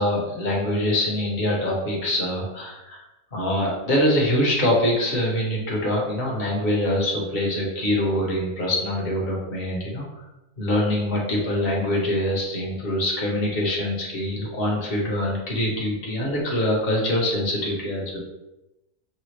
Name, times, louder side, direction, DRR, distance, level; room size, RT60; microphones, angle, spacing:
voice 1, 0.0-3.0 3.3-10.0 10.6-18.2, left 1 dB, 40° left, -3 dB, 1.3 m, -24 dB
6.6 x 2.3 x 3.2 m, 0.97 s
omnidirectional pair, 1.5 m